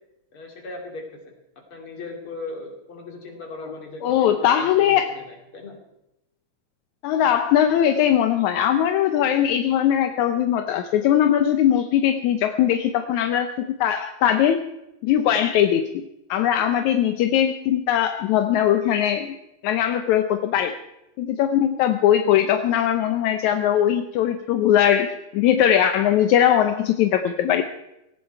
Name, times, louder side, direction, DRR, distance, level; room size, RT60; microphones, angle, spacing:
voice 1, 0.3-1.3 1.7-5.8, left 3 dB, 45° left, 2 dB, 3.4 m, -38 dB
voice 2, 4.0-5.1 7.0-14.6 15.0-19.4 19.6-20.8 21.2-27.6, left 10 dB, 80° left, 8 dB, 2.1 m, -20 dB
18.0 x 15.0 x 4.6 m, 0.89 s
omnidirectional pair, 3.4 m